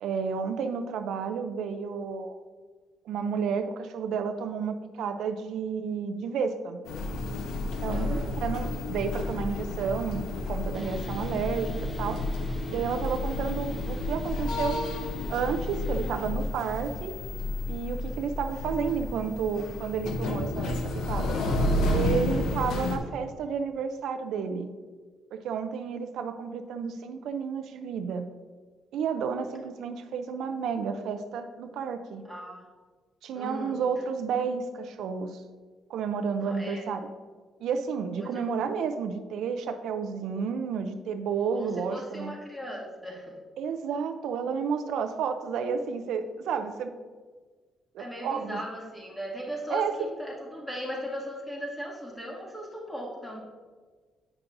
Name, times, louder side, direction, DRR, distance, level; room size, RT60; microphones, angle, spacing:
voice 1, 0.0-2.4 3.1-6.8 7.8-12.2 12.7-14.8 15.3-17.2 17.7-21.4 21.9-24.7 25.3-28.3 28.9-32.3 33.2-35.4 35.9-37.0 37.6-42.3 43.6-46.9 47.9-48.6 49.7-49.9, right 6 dB, 80° right, 8 dB, 0.4 m, -31 dB
sound 1, 6.9-23.0, left 2 dB, 80° left, 0.7 m, -31 dB
voice 2, 7.9-8.3 32.2-32.7 33.3-33.8 36.4-36.9 38.1-38.5 41.5-43.4 48.0-53.4, equal, 10° left, -3 dB, 2.0 m, -38 dB
sound 2, 10.7-16.1, right 2 dB, 20° right, 0.7 m, -43 dB
8.6 x 5.9 x 2.6 m, 1.4 s
cardioid pair, 90°, 0 cm